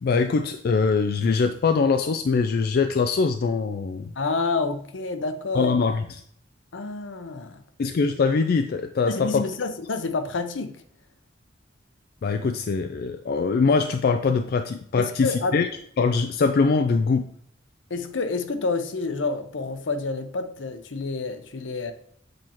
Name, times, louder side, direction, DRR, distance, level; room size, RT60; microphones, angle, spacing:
voice 1, 0.0-4.1 5.5-6.0 7.8-9.5 12.2-15.7 16.0-17.3, left 4 dB, 55° left, 7 dB, 0.3 m, -22 dB
voice 2, 4.2-5.8 6.7-7.6 9.0-10.8 15.0-15.5 17.9-21.9, left 3 dB, 80° left, 8 dB, 0.7 m, -28 dB
7.6 x 4.4 x 3.0 m, 0.66 s
head